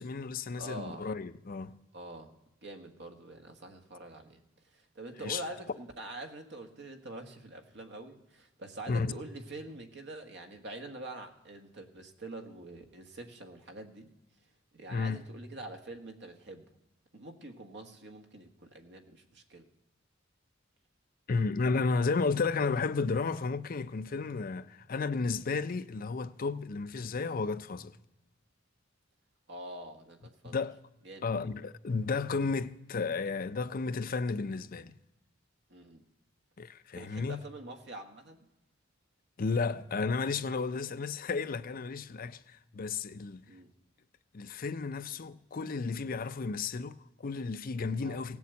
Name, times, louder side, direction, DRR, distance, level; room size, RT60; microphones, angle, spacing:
voice 1, 0.0-1.8 5.2-5.4 8.9-9.1 14.9-15.2 21.3-28.0 30.4-30.8 31.2-34.9 36.6-37.4 39.4-43.5 44.3-48.4, left 4 dB, 45° left, 0.5 m, -33 dB
voice 2, 0.6-1.1 1.9-2.3 2.6-14.1 14.7-16.7 17.1-19.7 29.5-30.5 31.0-31.3 35.7-36.1 36.9-38.5 43.5-43.7 48.0-48.2, right 2 dB, 60° right, 1.5 m, -45 dB
17.5 x 7.1 x 8.2 m
head